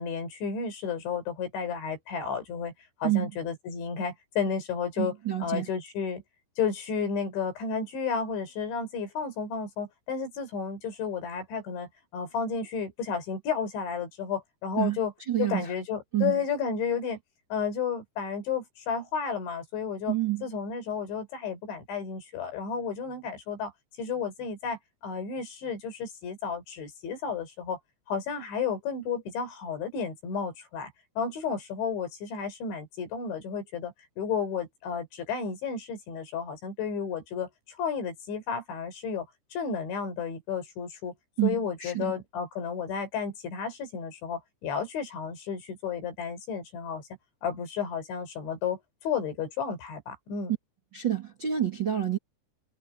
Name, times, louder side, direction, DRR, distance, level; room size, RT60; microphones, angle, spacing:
voice 1, 0.0-2.7 3.0-5.1 5.4-6.2 6.6-15.1 15.4-17.2 17.5-20.1 20.4-23.7 24.0-24.8 25.0-27.8 28.1-30.9 31.2-39.3 39.5-41.1 41.4-47.0 47.4-50.5, left 6 dB, 80° left, 7.0 m, -32 dB
voice 2, 5.0-5.7 14.8-15.0 15.3-15.7 16.1-16.4 20.1-20.4 41.4-42.2 50.9-52.2, right 12 dB, 45° right, 1.6 m, -28 dB
omnidirectional pair, 5.2 m